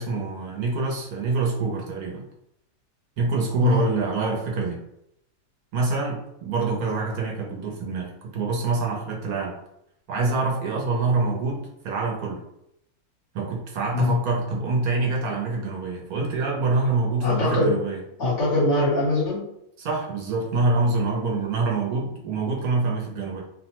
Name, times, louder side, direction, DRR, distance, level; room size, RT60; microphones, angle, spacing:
voice 1, 0.0-2.2 3.2-4.8 5.7-9.6 10.1-12.4 13.3-18.0 19.8-23.4, right 3 dB, 70° right, -2 dB, 1.1 m, -25 dB
voice 2, 17.2-17.8 18.2-19.4, left 2 dB, 50° left, -8 dB, 1.4 m, -22 dB
2.9 x 2.1 x 2.9 m, 0.78 s
omnidirectional pair, 1.7 m